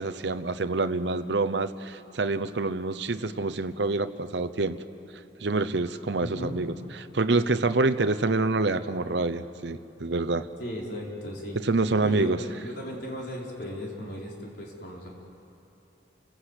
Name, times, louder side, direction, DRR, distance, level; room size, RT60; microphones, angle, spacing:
voice 1, 0.0-4.8 5.4-6.7 7.1-10.5 11.6-12.4, right 3 dB, 70° right, 9 dB, 0.8 m, -26 dB
voice 2, 6.2-6.6 10.6-11.6 12.0-12.3 12.6-15.1, left 1 dB, 65° left, -3 dB, 4.5 m, -36 dB
30.0 x 16.5 x 8.2 m, 2.9 s
head